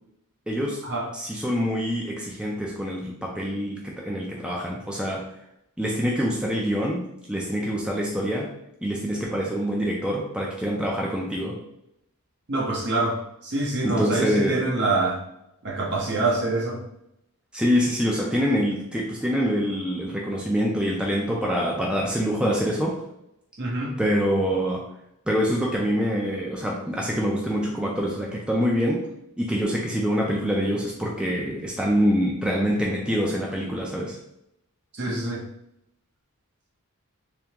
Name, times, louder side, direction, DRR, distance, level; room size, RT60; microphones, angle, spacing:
voice 1, 0.5-0.8 1.1-5.2 5.8-8.5 8.8-11.6 13.8-14.6 17.5-23.0 24.0-24.8 25.3-29.0 29.4-34.2, equal, 5° right, -3 dB, 0.4 m, -25 dB
voice 2, 12.5-15.2 15.6-16.8 23.6-24.0 34.9-35.4, right 2 dB, 50° right, -2 dB, 0.9 m, -25 dB
3.5 x 3.4 x 2.9 m, 0.81 s
head